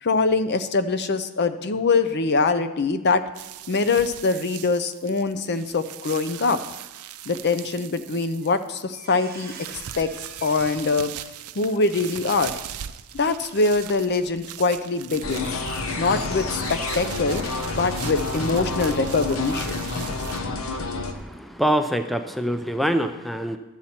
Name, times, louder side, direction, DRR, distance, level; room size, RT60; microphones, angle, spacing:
voice 1, 0.0-3.2 3.7-6.6 7.3-9.5 10.0-10.1 10.4-11.1 11.6-12.6 13.1-15.5 16.0-17.4 17.7-19.9, left 3 dB, 50° left, 11 dB, 0.6 m, -23 dB
sound 1, 3.3-8.8 9.2-20.4, right 12 dB, 90° right, 0.4 m, -40 dB
Squeak, 8.3-8.5 8.8-13.8 14.1-14.3 14.7-14.8, right 6 dB, 45° right, 1.1 m, -46 dB
sound 2, 15.2-21.1, left 3 dB, 70° left, 0.9 m, -29 dB
voice 2, 21.1-23.6, right 1 dB, ahead, 7 dB, 0.4 m, -25 dB
12.0 x 7.3 x 4.3 m, 1.1 s
head